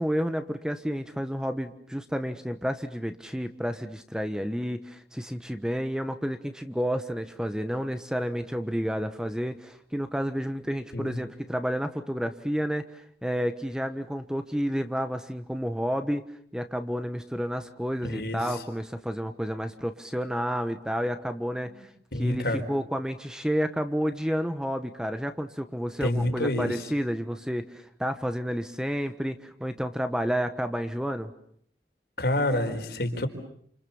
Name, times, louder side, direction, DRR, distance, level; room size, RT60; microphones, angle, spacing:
voice 1, 0.0-12.9 13.2-16.2 16.5-21.9 22.2-31.3, equal, 5° right, 8 dB, 1.3 m, -30 dB
voice 2, 18.0-18.6 22.1-22.6 26.0-26.9 32.2-33.3, left 1 dB, 65° left, 5 dB, 4.6 m, -28 dB
30.0 x 28.0 x 7.2 m, 0.65 s
head